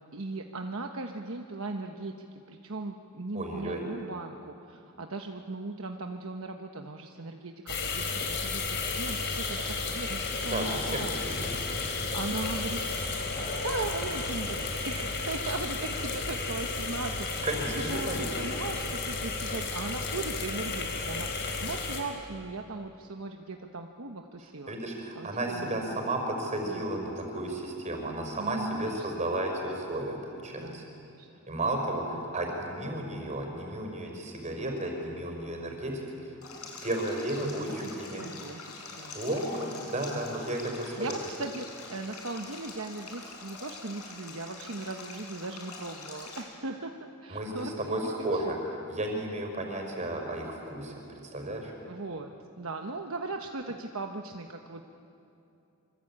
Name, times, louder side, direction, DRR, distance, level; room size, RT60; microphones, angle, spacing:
voice 1, 0.0-11.1 12.1-17.5 17.7-24.8 25.2-26.0 26.6-27.6 28.4-29.3 30.6-31.3 32.2-32.4 34.6-34.8 37.8-38.6 38.9-39.2 40.8-48.5 50.0-50.1 51.8-54.8, right 2 dB, 65° right, 4 dB, 1.1 m, -38 dB
voice 2, 3.3-3.8 10.4-11.5 17.4-18.3 24.7-30.8 31.5-36.3 36.8-38.2 39.1-41.2 47.3-48.6 48.9-51.7, right 1 dB, 30° right, 2 dB, 5.2 m, -33 dB
sound 1, 7.7-22.0, left 3 dB, 50° left, 4.1 m, -33 dB
Stream, 36.4-46.4, left 4 dB, 75° left, 5.8 m, -45 dB
26.0 x 25.0 x 8.7 m, 2.8 s
head